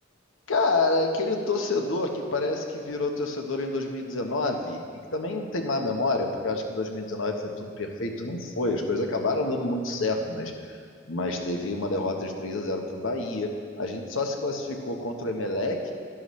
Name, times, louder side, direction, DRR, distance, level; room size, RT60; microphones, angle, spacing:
voice 1, 0.5-4.8 5.1-10.7 11.1-15.9, left 2 dB, 90° left, 3 dB, 1.1 m, -28 dB
11.5 x 11.0 x 3.2 m, 2.1 s
head